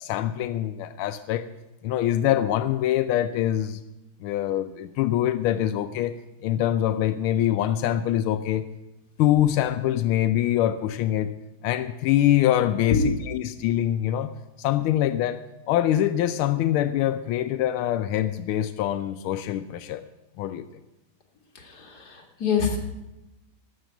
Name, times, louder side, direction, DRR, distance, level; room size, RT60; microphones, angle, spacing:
voice 1, 0.0-1.5 1.8-3.8 4.2-6.1 6.4-8.7 9.2-11.3 11.6-14.3 14.6-15.4 15.7-20.0 20.4-20.7, left 12 dB, 90° left, 9 dB, 1.5 m, -24 dB
voice 2, 21.5-22.8, left 5 dB, 50° left, 1 dB, 2.6 m, -25 dB
13.0 x 7.1 x 9.1 m, 0.97 s
omnidirectional pair, 2.3 m